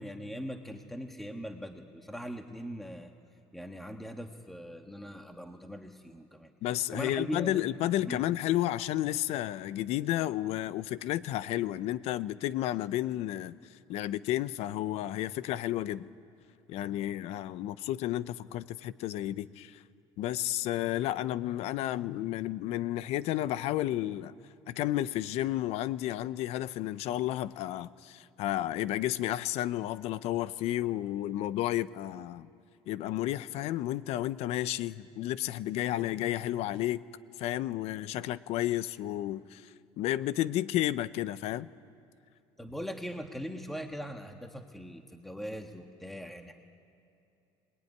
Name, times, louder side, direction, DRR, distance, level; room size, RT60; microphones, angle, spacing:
voice 1, 0.0-3.1 3.5-6.5 6.9-7.6 8.1-8.2 42.6-46.5, equal, ahead, 1.5 m, -40 dB
voice 2, 6.6-13.6 13.9-16.1 16.7-19.8 20.2-24.3 24.7-32.5 32.9-37.0 37.4-39.7 40.0-41.7, left 14 dB, 65° left, 0.8 m, -32 dB
26.0 x 19.5 x 9.7 m
cardioid pair, 130°, 12 cm